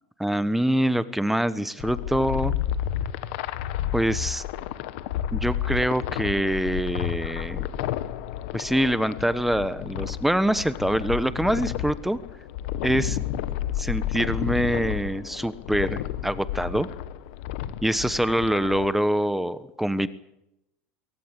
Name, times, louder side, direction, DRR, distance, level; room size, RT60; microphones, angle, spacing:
voice 1, 0.2-2.5 3.9-4.4 5.3-7.7 8.5-12.2 12.8-13.2 13.8-16.9 17.8-20.1, right 1 dB, 5° right, 15 dB, 1.2 m, -25 dB
sound 1, 1.8-18.9, left 11 dB, 75° left, 1.7 m, -31 dB
22.5 x 18.0 x 8.3 m, 0.86 s
supercardioid pair, 100°, 6 cm